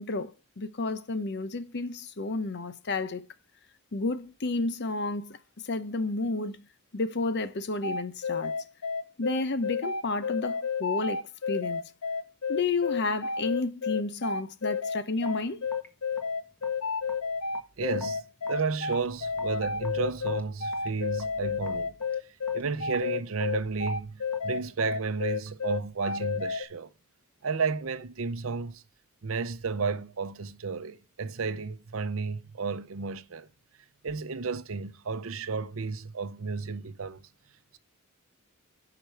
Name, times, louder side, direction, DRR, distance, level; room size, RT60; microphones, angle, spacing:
voice 1, 0.0-3.2 3.9-5.4 5.6-6.6 6.9-8.5 9.2-11.9 12.5-15.7, left 3 dB, 55° left, 0.7 m, -31 dB
sound 1, 7.8-26.6, left 5 dB, 80° left, 0.8 m, -31 dB
Raindrop / Drip, 15.2-25.7, equal, 5° left, 1.4 m, -51 dB
voice 2, 17.8-18.2 18.5-21.9 22.5-26.9 27.4-28.8 29.2-33.5 34.0-37.2, right 4 dB, 65° right, 0.7 m, -32 dB
10.0 x 6.0 x 4.6 m
head